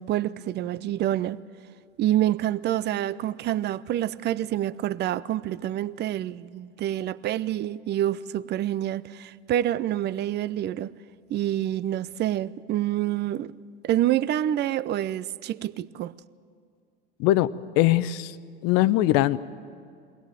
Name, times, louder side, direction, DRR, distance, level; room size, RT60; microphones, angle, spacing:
voice 1, 0.0-1.4 2.0-10.9 11.3-13.5 13.8-16.1, right 12 dB, 35° right, 0.6 m, -27 dB
voice 2, 17.8-18.4 18.6-19.4, left 15 dB, 55° left, 0.9 m, -21 dB
23.0 x 17.5 x 9.0 m
hypercardioid pair, 90°, 30 cm